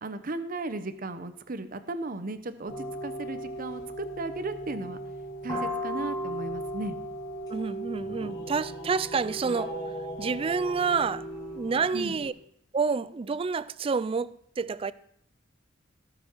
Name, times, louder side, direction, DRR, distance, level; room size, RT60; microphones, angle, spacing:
voice 1, 0.0-5.0 5.4-7.0 11.9-12.2, right 2 dB, 45° right, 0.8 m, -35 dB
sound 1, 2.7-12.3, right 1 dB, 20° left, 3.8 m, -36 dB
voice 2, 7.5-9.7 10.2-11.2 11.5-12.3 12.7-14.9, right 5 dB, 30° right, 0.3 m, -28 dB
17.5 x 6.9 x 4.6 m
head